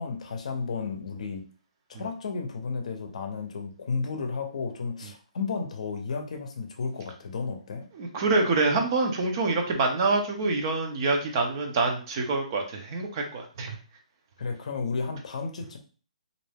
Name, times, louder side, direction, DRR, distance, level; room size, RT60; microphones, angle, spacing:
voice 1, 0.0-1.4 2.0-7.9 14.4-15.8, left 4 dB, 60° left, 5 dB, 0.6 m, -33 dB
voice 2, 7.9-13.8, right 3 dB, 30° right, 3 dB, 0.5 m, -26 dB
2.5 x 2.2 x 3.3 m, 0.38 s
hypercardioid pair, 160°, 4 cm